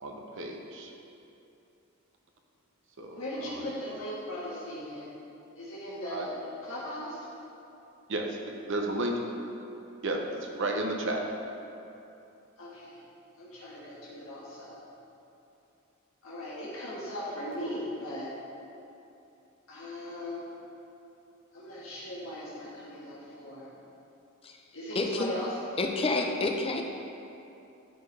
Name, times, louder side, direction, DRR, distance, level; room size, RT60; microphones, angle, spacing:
voice 1, 0.0-0.9 3.0-3.6 6.0-6.3 8.1-9.2 10.0-11.3, right 1 dB, 65° right, 2 dB, 0.8 m, -33 dB
voice 2, 3.1-5.1 5.6-6.3 6.6-7.2 12.6-13.0 13.4-14.8 16.2-18.3 19.7-20.5 21.5-23.7 24.7-25.5, left 1 dB, 85° left, -8 dB, 1.5 m, -38 dB
voice 3, 24.9-25.3 25.8-26.8, left 3 dB, 25° left, 2 dB, 0.6 m, -28 dB
11.0 x 4.4 x 3.3 m, 2.8 s
head